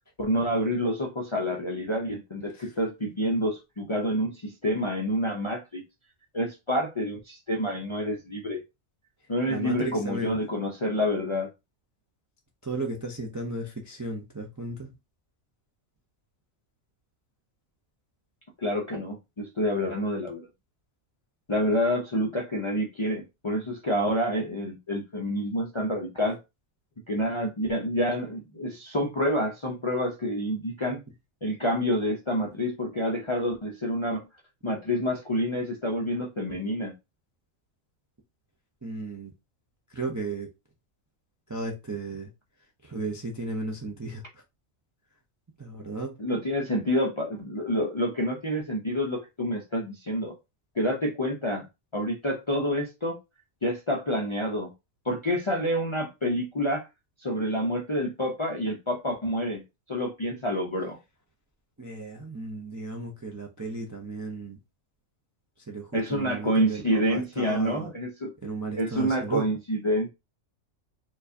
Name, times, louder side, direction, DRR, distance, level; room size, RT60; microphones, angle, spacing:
voice 1, 0.2-5.8 6.3-8.6 9.3-11.5 18.6-20.5 21.5-26.4 27.1-31.0 31.4-34.2 34.6-36.9 46.2-50.3 50.8-51.7 51.9-53.2 53.6-54.7 55.0-56.9 57.2-59.6 59.9-61.0 65.9-68.3 68.8-70.1, equal, 40° left, 0.4 m, -28 dB
voice 2, 9.4-10.4 12.6-14.9 38.8-39.3 39.9-40.5 41.5-42.3 42.8-44.4 45.6-46.2 61.8-64.6 65.7-67.9 68.4-69.5, right 2 dB, 25° right, 0.3 m, -35 dB
4.5 x 2.3 x 2.6 m
omnidirectional pair, 1.3 m